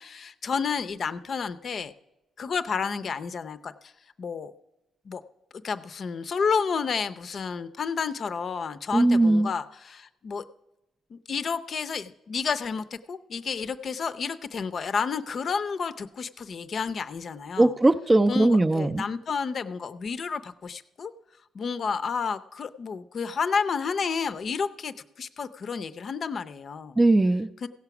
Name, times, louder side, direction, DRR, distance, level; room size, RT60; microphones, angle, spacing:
voice 1, 0.0-1.9 2.4-3.9 4.2-4.5 5.0-5.2 5.6-10.4 11.1-17.8 18.3-21.1 21.5-27.0 27.6-27.7, left 5 dB, 50° left, 12 dB, 0.6 m, -31 dB
voice 2, 8.9-9.5 17.6-19.0 27.0-27.5, right 2 dB, 20° right, 8 dB, 0.4 m, -20 dB
16.0 x 5.9 x 6.0 m, 0.95 s
cardioid pair, 90°, 0 cm